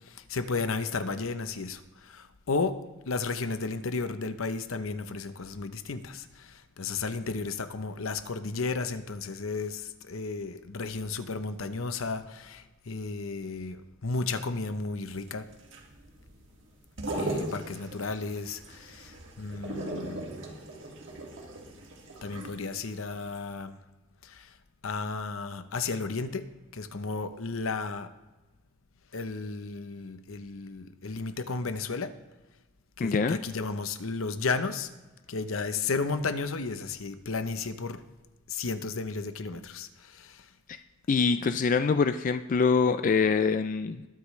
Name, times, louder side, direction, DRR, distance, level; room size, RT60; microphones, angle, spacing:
voice 1, 0.1-2.8 3.1-15.5 17.2-20.3 22.2-23.8 24.2-24.5 24.8-26.4 26.7-28.1 29.1-32.1 33.0-34.9 35.3-38.0 38.5-40.5, left 4 dB, 80° left, 10 dB, 0.8 m, -33 dB
sound 1, 15.1-23.0 23.3-23.4, right 1 dB, 60° right, 1.9 m, -38 dB
voice 2, 33.0-33.4 41.1-44.1, left 5 dB, 40° left, 10 dB, 0.3 m, -24 dB
21.0 x 8.2 x 3.2 m, 1.1 s
head